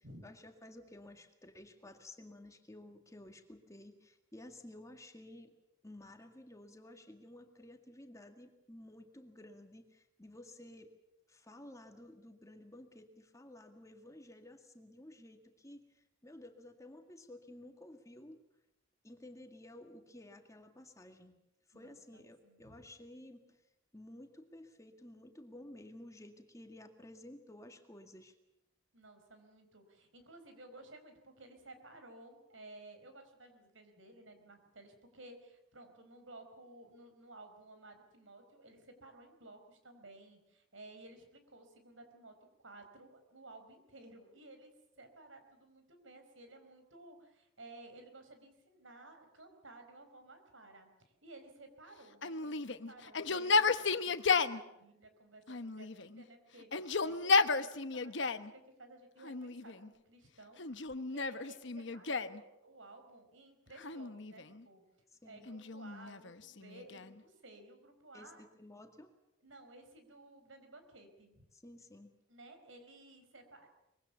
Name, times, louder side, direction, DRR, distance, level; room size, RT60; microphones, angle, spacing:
voice 1, 0.0-5.5 5.8-10.9 11.3-18.4 19.0-21.4 21.7-23.6 23.9-28.4 65.2-65.5 68.1-69.1 71.5-72.1, left 1 dB, 15° left, 5 dB, 2.0 m, -54 dB
voice 2, 21.7-22.8 28.9-44.7 45.0-64.8 65.2-68.5 69.4-71.4 72.3-73.7, right 2 dB, 80° right, 7 dB, 4.8 m, -56 dB
Yell, 52.2-54.6 55.5-56.2 56.6-58.5 59.2-59.9 60.6-62.4 63.8-64.6 65.5-67.2, left 4 dB, 65° left, 1.0 m, -33 dB
24.0 x 22.5 x 7.1 m, 0.87 s
head